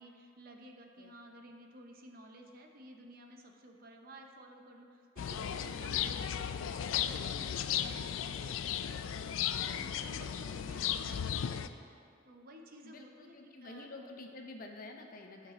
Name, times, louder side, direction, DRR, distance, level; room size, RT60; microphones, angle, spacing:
voice 1, 0.0-11.4 12.2-13.9 15.4-15.5, right 1 dB, 50° right, 3 dB, 0.7 m, -54 dB
sound 1, 5.2-11.7, left 9 dB, 85° left, 0.3 m, -35 dB
voice 2, 12.8-15.5, left 2 dB, 45° left, 3 dB, 0.7 m, -49 dB
12.5 x 4.7 x 3.7 m, 2.3 s
head